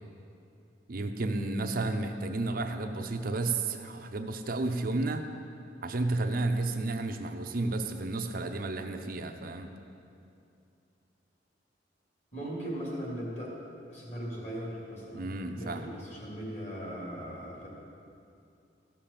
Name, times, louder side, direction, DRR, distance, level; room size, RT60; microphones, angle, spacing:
voice 1, 0.9-5.2 5.8-9.7 15.1-15.8, right 2 dB, 55° right, 5 dB, 0.6 m, -32 dB
voice 2, 12.3-13.6 13.9-17.7, equal, 40° left, -4 dB, 3.0 m, -38 dB
14.0 x 5.7 x 6.9 m, 2.6 s
head